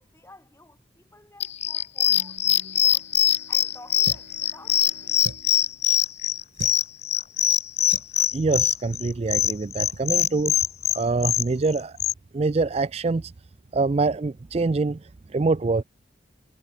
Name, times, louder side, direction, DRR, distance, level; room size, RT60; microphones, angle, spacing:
voice 1, 0.0-3.1 3.5-5.2, left 2 dB, 15° left, 5.5 m, -52 dB
sound 1, 1.4-12.1, left 11 dB, 30° left, 0.5 m, -22 dB
Bowed string instrument, 2.0-7.1, right 1 dB, 60° right, 2.2 m, -53 dB
sound 2, 4.0-4.4 5.2-5.6 6.5-6.8 7.9-8.2 8.9-9.1 9.4-9.5 9.9-10.1, right 2 dB, 80° right, 1.2 m, -39 dB
voice 2, 8.3-10.5 10.9-12.0 12.3-13.3 13.7-15.0 15.3-15.8, right 3 dB, 30° right, 0.4 m, -24 dB
head